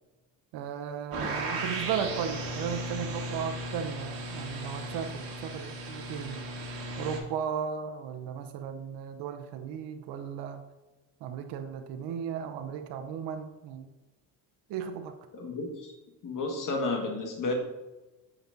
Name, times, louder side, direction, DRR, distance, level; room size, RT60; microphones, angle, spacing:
voice 1, 0.5-6.5 7.0-10.6 11.2-13.9 14.7-15.1, right 8 dB, 80° right, 6 dB, 0.7 m, -35 dB
sound 1, 1.1-7.2, right 1 dB, 60° right, 1.8 m, -36 dB
voice 2, 15.3-15.9 16.2-17.5, left 3 dB, 50° left, 2 dB, 1.6 m, -32 dB
7.9 x 5.9 x 2.6 m, 1.1 s
cardioid pair, 95°, 40 cm